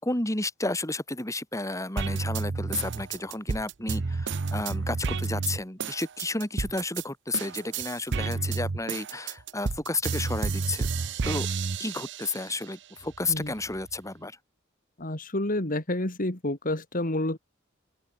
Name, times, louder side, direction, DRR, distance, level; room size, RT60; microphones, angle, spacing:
voice 1, 0.0-10.9 11.3-11.5 11.8-14.4, left 2 dB, 15° left, 3.9 m, -32 dB
sound 1, 2.0-7.0 7.3-12.5 13.0-14.0, right 4 dB, 60° right, 0.7 m, -31 dB
voice 2, 15.0-17.4, left 1 dB, 45° left, 2.7 m, -29 dB
open air
head